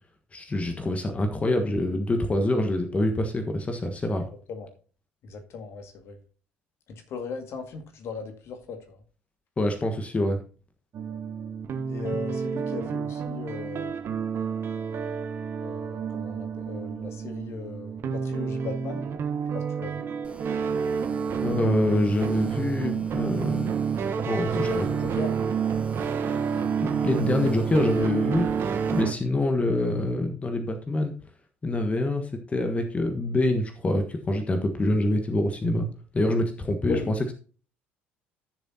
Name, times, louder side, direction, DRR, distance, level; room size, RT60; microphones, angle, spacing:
voice 1, 0.3-4.3 9.6-10.4 21.4-23.7 24.3-24.9 26.8-28.5 28.9-31.1 31.6-35.9 36.1-37.3, left 1 dB, 25° left, 5 dB, 1.4 m, -26 dB
voice 2, 4.2-4.7 5.2-6.2 6.9-9.0 11.9-14.2 15.6-19.1 19.5-20.1 24.6-25.3 36.9-37.3, left 5 dB, 50° left, 6 dB, 2.0 m, -38 dB
sound 1, 10.9-29.1, right 6 dB, 45° right, 1.1 m, -29 dB
sound 2, 20.2-29.0, right 3 dB, 20° right, 1.8 m, -46 dB
14.5 x 6.9 x 2.8 m, 0.39 s
figure-of-eight pair, 55°, 6 cm